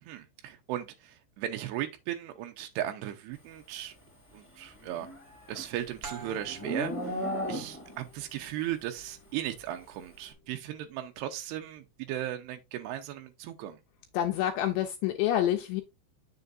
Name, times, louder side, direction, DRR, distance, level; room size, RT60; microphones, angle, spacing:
voice 1, 0.0-3.9 4.3-5.1 5.5-13.8, right 12 dB, 85° right, 2.4 m, -37 dB
Livestock farm animals working animals, 4.8-8.1, equal, 25° left, 0.6 m, -36 dB
sound 1, 6.0-11.3, right 3 dB, 55° right, 1.5 m, -50 dB
voice 2, 14.1-15.8, left 12 dB, 80° left, 2.5 m, -27 dB
7.9 x 6.7 x 2.5 m
omnidirectional pair, 5.5 m